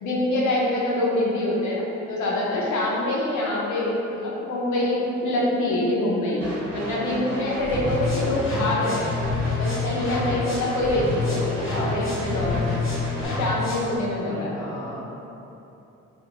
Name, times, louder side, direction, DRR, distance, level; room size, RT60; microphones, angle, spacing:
voice 1, 0.0-9.1 9.5-12.8 13.2-14.5, left 1 dB, 75° left, -5 dB, 0.8 m, -25 dB
sound 1, 6.4-13.3, right 1 dB, 50° right, 0.9 m, -34 dB
sound 2, 7.6-14.0, left 4 dB, 45° left, 0.8 m, -28 dB
voice 2, 7.7-8.4 14.2-15.1, left 1 dB, 10° left, -8 dB, 0.8 m, -38 dB
2.7 x 2.5 x 2.9 m, 2.9 s
cardioid pair, 90°, 30 cm